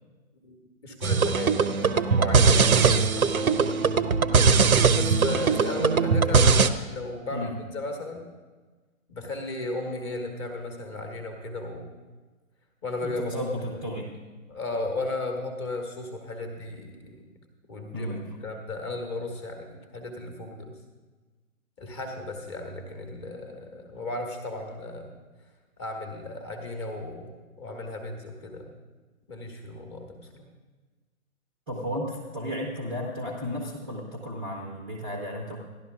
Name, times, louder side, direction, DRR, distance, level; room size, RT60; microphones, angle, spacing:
voice 1, 0.4-4.2 4.9-8.2 9.1-11.9 12.8-13.4 14.5-17.2 17.7-18.2 18.4-20.8 21.8-25.2 25.8-28.7 29.3-30.5, left 2 dB, 20° left, 4 dB, 1.1 m, -35 dB
sound 1, 1.0-6.7, right 5 dB, 85° right, 0.8 m, -20 dB
voice 2, 13.0-14.2 17.9-18.2 31.7-35.6, equal, 10° right, -3 dB, 0.6 m, -33 dB
16.5 x 11.5 x 2.3 m, 1.3 s
figure-of-eight pair, 145°, 42 cm